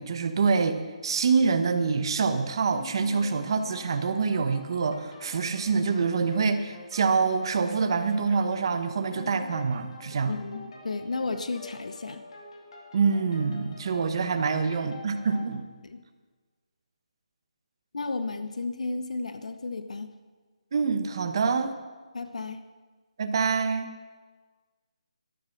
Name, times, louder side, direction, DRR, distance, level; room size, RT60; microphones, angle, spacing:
voice 1, 0.0-10.3 12.9-15.6 20.7-21.7 23.2-23.9, right 5 dB, 40° right, 9 dB, 1.2 m, -26 dB
sound 1, 2.7-15.5, left 3 dB, 50° left, 2.9 m, -46 dB
voice 2, 10.3-12.2 15.8-16.0 17.9-20.1 22.1-22.6, left 3 dB, 75° left, 9 dB, 1.1 m, -33 dB
13.0 x 13.0 x 6.0 m, 1.4 s
hypercardioid pair, 170°, 4 cm